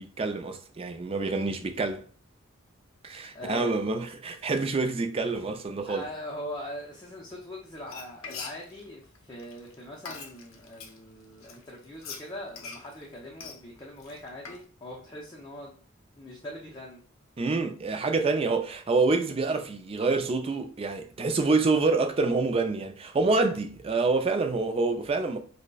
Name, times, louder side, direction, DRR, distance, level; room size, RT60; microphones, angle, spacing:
voice 1, 0.0-2.0 3.0-6.0 17.4-25.4, right 3 dB, 25° right, 0.3 m, -27 dB
voice 2, 3.3-3.9 5.9-15.8 16.1-17.0, left 1 dB, 20° left, 0.5 m, -41 dB
Frying (food), 7.7-11.0 11.4-14.6, left 5 dB, 80° left, 0.6 m, -43 dB
5.0 x 2.1 x 2.3 m
head